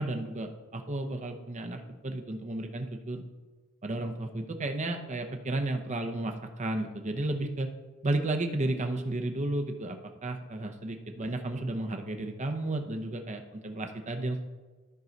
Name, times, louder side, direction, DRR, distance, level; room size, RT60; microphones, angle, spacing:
voice 1, 0.0-3.2 3.8-7.7 8.0-14.4, right 2 dB, 35° right, 5 dB, 0.8 m, -33 dB
13.5 x 4.7 x 4.0 m, 1.3 s
head